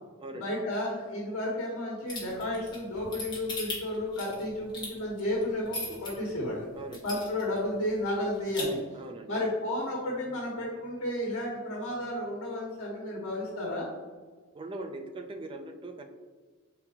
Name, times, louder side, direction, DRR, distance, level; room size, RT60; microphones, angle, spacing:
voice 1, 0.4-6.7 7.0-8.8 9.3-13.9, left 1 dB, 75° left, -4 dB, 1.2 m, -32 dB
sound 1, 2.1-6.1 6.5-6.6 6.9-7.6 7.9-8.0 8.3-8.6, left 2 dB, 20° left, 1.4 m, -37 dB
voice 2, 8.9-9.5 14.5-16.1, right 2 dB, 25° right, 6 dB, 0.3 m, -41 dB
4.7 x 3.8 x 2.8 m, 1.4 s
head